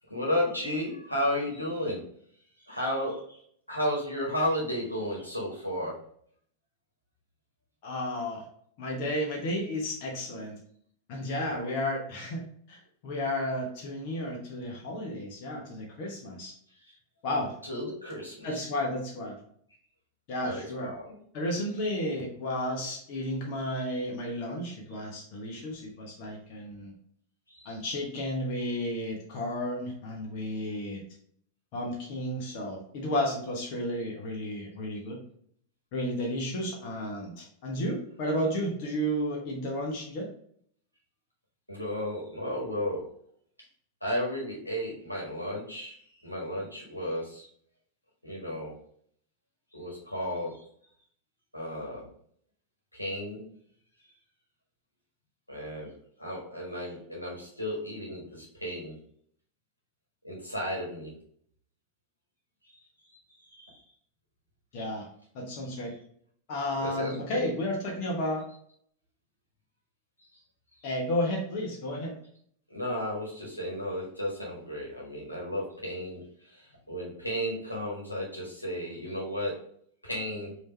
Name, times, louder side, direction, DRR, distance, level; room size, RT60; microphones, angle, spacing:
voice 1, 0.1-2.0 2.6-3.4 3.7-6.0 16.8-17.0 17.6-18.6 20.4-21.2 27.5-27.8 41.7-43.1 44.0-47.5 48.2-48.7 49.7-50.6 51.5-52.0 52.9-53.4 55.5-58.9 60.2-61.1 62.6-62.8 63.4-63.8 66.8-67.5 72.7-79.6 80.0-80.5, equal, 85° left, -3 dB, 1.5 m, -33 dB
voice 2, 7.8-8.4 8.8-10.6 11.1-12.4 12.7-16.5 17.2-17.5 18.4-19.4 20.3-20.9 21.3-26.9 27.6-31.0 31.7-35.2 35.9-40.3 64.7-65.1 65.3-65.9 66.5-68.4 70.8-72.1, left 1 dB, 45° left, -1 dB, 1.2 m, -32 dB
5.0 x 3.0 x 3.3 m, 0.63 s
figure-of-eight pair, 90°, 0 cm